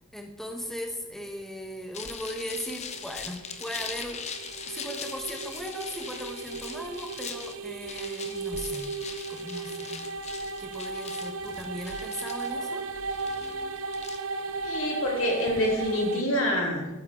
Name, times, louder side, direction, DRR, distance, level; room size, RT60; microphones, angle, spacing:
voice 1, 0.1-4.2 4.6-8.9 9.3-10.0 10.6-12.8, equal, ahead, 2 dB, 1.0 m, -38 dB
sound 1, 1.9-15.9, left 6 dB, 35° left, 0.9 m, -41 dB
sound 2, 2.7-16.2, right 4 dB, 75° right, 0.7 m, -36 dB
voice 2, 14.6-16.9, left 1 dB, 75° left, -1 dB, 3.0 m, -26 dB
13.0 x 8.9 x 3.7 m, 1.1 s
head